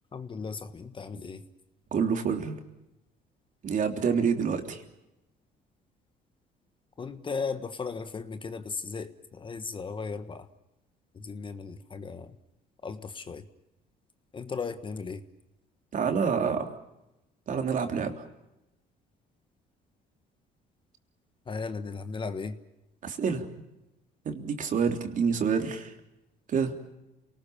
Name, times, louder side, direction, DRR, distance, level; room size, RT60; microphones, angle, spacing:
voice 1, 0.1-1.4 7.0-10.5 11.1-12.4 12.8-13.5 14.3-15.2 21.5-22.6, left 4 dB, 30° left, 10 dB, 1.4 m, -36 dB
voice 2, 1.9-2.6 3.6-4.8 15.9-16.7 17.5-18.1 23.0-23.5 24.2-25.9 26.5-26.7, right 6 dB, 50° right, 5 dB, 3.3 m, -27 dB
28.0 x 19.5 x 7.2 m, 0.91 s
cardioid pair, 110°, 17 cm